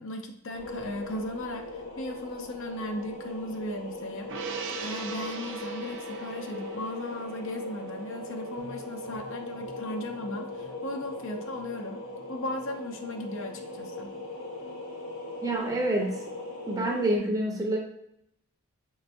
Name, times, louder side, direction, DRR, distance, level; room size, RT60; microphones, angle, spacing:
voice 1, 0.0-4.3 4.8-12.0 12.3-14.1, left 1 dB, 60° left, 4 dB, 0.5 m, -37 dB
sound 1, 0.5-17.2, left 2 dB, 80° left, 1.5 m, -39 dB
Gong, 4.3-10.9 11.2-11.4, right 5 dB, 55° right, 0.4 m, -42 dB
voice 2, 15.4-16.2 16.7-17.8, right 1 dB, 15° right, 0 dB, 0.6 m, -27 dB
4.7 x 3.3 x 2.5 m, 0.77 s
head